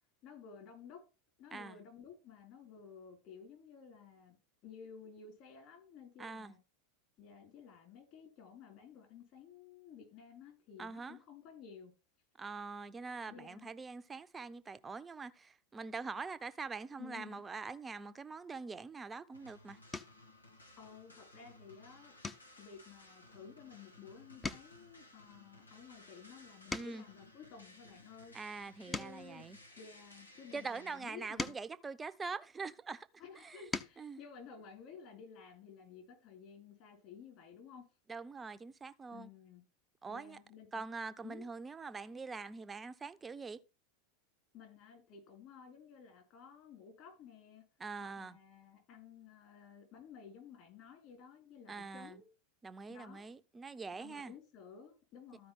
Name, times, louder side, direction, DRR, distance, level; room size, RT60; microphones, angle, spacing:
voice 1, 0.2-1.0 1.4-4.4 4.6-6.6 7.2-11.9 13.3-13.7 17.0-17.4 20.8-22.1 22.6-28.4 28.8-29.4 29.8-31.5 33.2-37.9 39.1-39.6 40.1-40.8 41.2-41.4 44.5-47.6 48.0-52.3 52.9-53.2 54.0-55.5, left 6 dB, 45° left, 5.2 m, -54 dB
voice 2, 6.2-6.6 10.8-11.2 12.4-19.8 26.7-27.0 28.3-29.6 30.5-33.1 33.3-33.7 34.0-34.2 38.1-39.3 40.0-40.4 40.7-43.6 47.8-48.4 51.7-52.2 52.6-54.3, right 4 dB, 20° right, 0.8 m, -44 dB
sound 1, 19.2-19.3 19.9-20.3 20.8-21.2 21.5-21.7 22.2-24.0 24.3-27.2 27.8-30.3 31.0-32.8 33.4-34.1 35.5-35.6 35.9-36.1, left 3 dB, 15° left, 0.9 m, -46 dB
sound 2, 19.3-31.0, left 1 dB, 90° left, 1.6 m, -59 dB
14.0 x 5.2 x 3.7 m
figure-of-eight pair, 85°, 0 cm